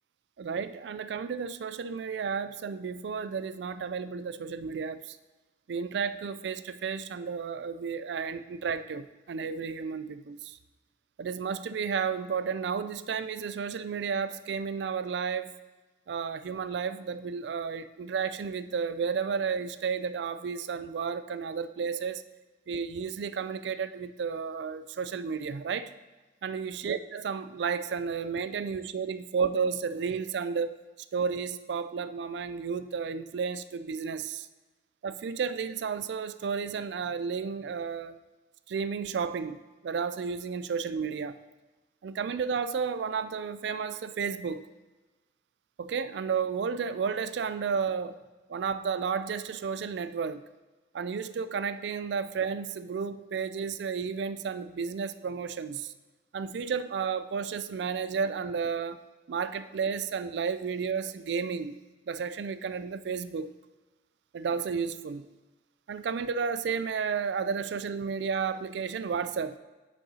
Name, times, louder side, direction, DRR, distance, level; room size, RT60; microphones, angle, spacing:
voice 1, 0.4-5.2 5.7-10.6 11.2-15.6 16.1-22.2 22.7-25.9 26.4-30.8 31.1-34.5 35.0-38.2 38.7-41.4 42.0-44.6 45.8-48.2 48.5-50.4 50.9-55.9 56.3-59.0 59.3-61.8 62.1-63.5 64.3-65.3 65.9-69.6, right 6 dB, 75° right, 13 dB, 0.3 m, -32 dB
9.7 x 5.5 x 2.8 m, 1.2 s
head